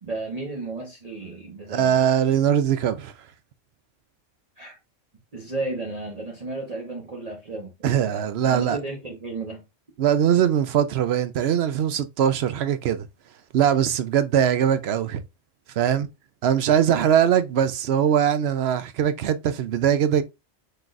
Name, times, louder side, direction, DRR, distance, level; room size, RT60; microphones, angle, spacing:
voice 1, 0.0-2.0 4.6-4.8 5.3-7.7 8.0-9.6, right 2 dB, 35° right, 1.0 m, -33 dB
voice 2, 1.7-3.1 7.8-8.8 10.0-13.1 13.5-15.2 15.8-16.1 16.4-20.2, right 9 dB, 65° right, 0.7 m, -21 dB
6.0 x 3.3 x 2.5 m
omnidirectional pair, 1.3 m